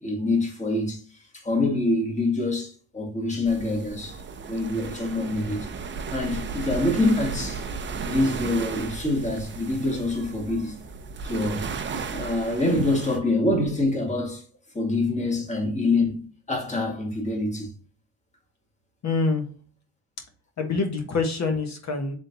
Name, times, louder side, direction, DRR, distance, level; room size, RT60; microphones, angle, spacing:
voice 1, 0.0-4.2 4.5-5.7 6.1-7.7 8.0-10.8 11.2-14.4 14.7-17.7, left 2 dB, 15° left, 1.8 m, -26 dB
sound 1, 3.4-13.2, right 5 dB, 30° right, 0.6 m, -35 dB
voice 2, 19.0-19.5 20.6-22.1, left 3 dB, 40° left, 1.2 m, -26 dB
3.7 x 3.6 x 2.7 m
cardioid pair, 90°, 40 cm